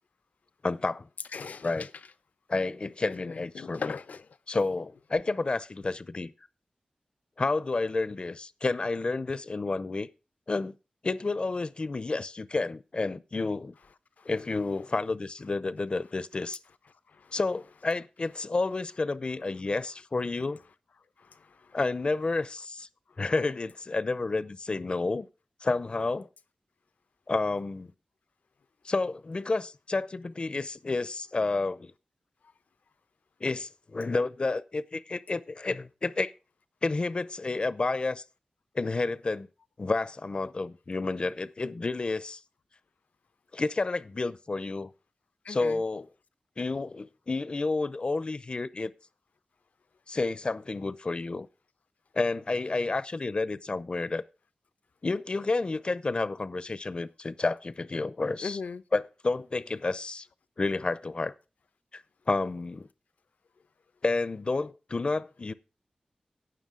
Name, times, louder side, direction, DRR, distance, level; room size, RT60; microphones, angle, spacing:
voice 1, 0.6-1.1 1.6-1.9 2.5-3.9 4.5-6.3 7.4-10.1 10.5-10.7 11.0-13.7 14.3-16.6 17.3-20.6 21.7-22.9 23.2-25.3 25.6-26.3 27.3-27.9 28.8-31.9 33.4-36.3 36.8-38.2 38.7-39.5 39.8-42.4 43.5-44.9 45.5-46.1 46.6-48.9 50.1-51.5 52.1-54.2 55.0-58.6 58.9-60.3 60.6-61.3 61.9-62.0 62.3-62.9 64.0-65.5, left 3 dB, 40° left, 0.6 m, -30 dB
voice 2, 1.3-1.9 3.2-4.3 14.2-14.3 17.2-17.3 21.2-21.7 45.4-45.8 58.4-58.8, left 5 dB, 80° left, 0.7 m, -39 dB
17.0 x 6.1 x 3.7 m
wide cardioid pair, 115°, 3 cm